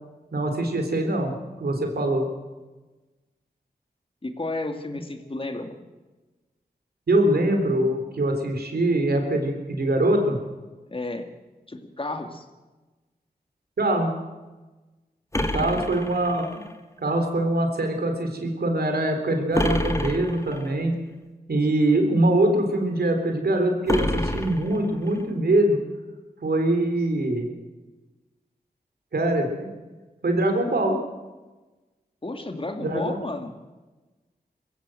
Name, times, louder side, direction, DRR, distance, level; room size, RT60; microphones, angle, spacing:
voice 1, 0.3-2.3 7.1-10.4 13.8-14.1 15.5-16.6 17.0-21.0 21.5-25.8 26.4-27.5 29.1-29.7 30.2-31.0 32.8-33.2, right 1 dB, 75° right, 4 dB, 3.8 m, -23 dB
voice 2, 4.2-5.9 10.9-11.3 11.7-12.4 15.5-15.9 32.2-33.5, left 2 dB, 35° left, 5 dB, 2.3 m, -32 dB
sound 1, 15.3-16.7 19.5-20.7 23.9-25.2, left 1 dB, 20° left, 1.8 m, -28 dB
21.5 x 15.5 x 7.8 m, 1.2 s
wide cardioid pair, 60°, 16 cm